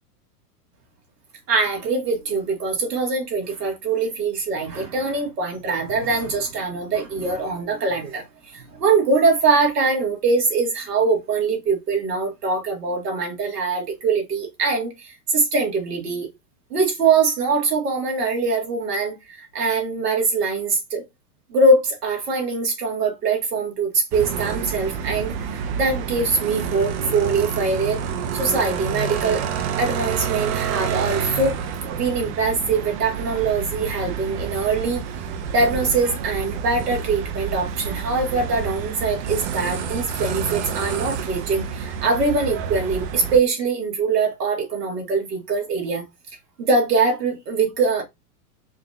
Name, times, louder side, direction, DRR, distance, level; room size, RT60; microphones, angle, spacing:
voice 1, 1.5-8.2 8.5-16.3 16.7-21.0 21.5-28.0 28.3-29.4 29.8-31.6 32.0-35.0 35.5-46.0 46.6-48.0, right 4 dB, 80° right, 2.2 m, -22 dB
sound 1, 24.1-43.4, right 7 dB, 45° right, 0.9 m, -28 dB
4.8 x 2.7 x 3.2 m
hypercardioid pair, 110°, 47 cm